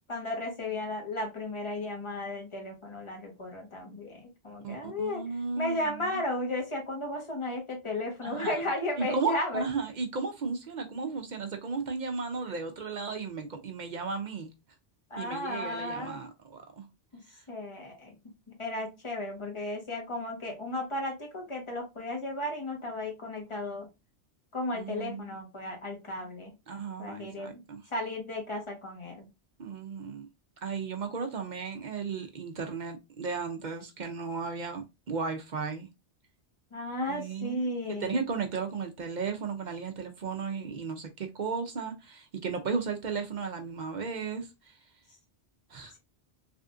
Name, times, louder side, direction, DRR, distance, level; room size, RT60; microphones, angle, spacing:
voice 1, 0.1-5.2 5.6-9.6 15.1-16.2 17.1-17.2 17.5-18.1 18.6-23.9 24.5-26.5 27.0-27.6 27.9-29.3 36.7-38.1, left 1 dB, 30° left, 1.0 m, -34 dB
voice 2, 4.6-6.2 8.2-8.6 9.0-14.5 15.2-16.9 17.3-17.4 24.7-25.4 26.7-27.8 29.6-30.3 30.6-35.9 37.1-37.6 37.9-44.7 45.7-46.0, right 5 dB, 55° right, 0.6 m, -35 dB
3.4 x 2.4 x 2.4 m
omnidirectional pair, 1.1 m